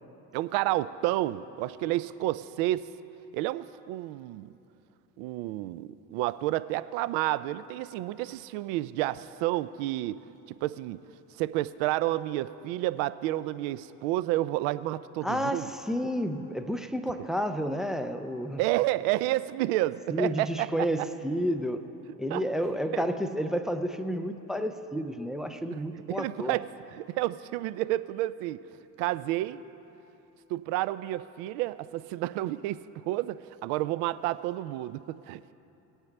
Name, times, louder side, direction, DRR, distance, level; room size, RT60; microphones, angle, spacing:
voice 1, 0.3-2.9 3.3-4.5 5.2-10.2 10.5-11.0 11.4-15.7 18.6-20.7 22.3-22.4 22.9-23.0 26.1-26.7 26.9-28.6 29.0-29.6 30.5-35.5, right 16 dB, 65° right, 16 dB, 0.5 m, -30 dB
voice 2, 15.2-18.6 20.1-21.8 22.2-26.6, equal, ahead, 8 dB, 0.3 m, -30 dB
18.0 x 8.9 x 3.3 m, 2.9 s
hypercardioid pair, 70°, 48 cm